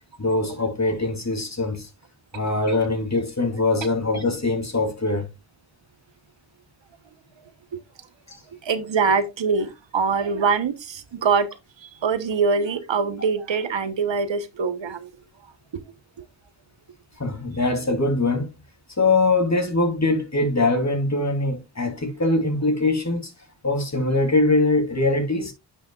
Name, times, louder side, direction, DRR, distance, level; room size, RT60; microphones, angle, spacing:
voice 1, 0.2-1.9 2.3-5.3 17.2-18.5 19.0-23.3 23.6-25.5, left 2 dB, 35° left, 3.0 m, -22 dB
voice 2, 8.6-11.5 11.8-15.1 15.7-15.8, right 5 dB, 70° right, 1.0 m, -23 dB
9.9 x 6.3 x 2.3 m
cardioid pair, 45°, 45 cm